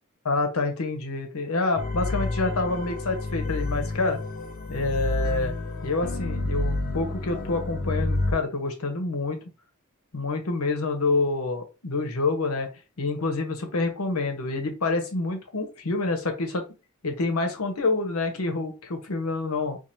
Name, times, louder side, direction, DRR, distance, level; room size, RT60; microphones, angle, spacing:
voice 1, 0.2-4.2 4.7-5.5 5.8-9.4 10.1-12.7 13.0-16.7 17.0-19.8, left 3 dB, 85° left, 5 dB, 0.9 m, -27 dB
sound 1, 1.8-8.3, left 2 dB, 40° left, 0.5 m, -29 dB
4.5 x 2.5 x 2.6 m, 0.30 s
head